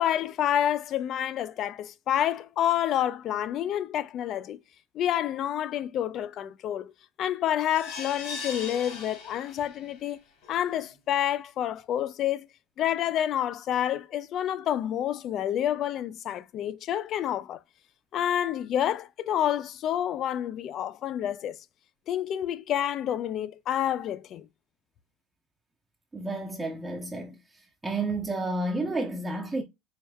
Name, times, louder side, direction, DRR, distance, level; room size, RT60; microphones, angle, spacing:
voice 1, 0.0-4.6 4.9-6.9 7.2-10.2 10.5-12.5 12.8-17.6 18.1-21.6 22.1-24.5, left 11 dB, 45° left, 0.4 m, -28 dB
sound 1, 7.7-10.0 10.4-10.5 10.9-11.0, left 4 dB, 70° left, 2.4 m, -39 dB
voice 2, 26.1-27.3 27.8-29.6, right 2 dB, 10° right, 0.7 m, -30 dB
4.6 x 3.2 x 2.3 m
supercardioid pair, 125°, 0 cm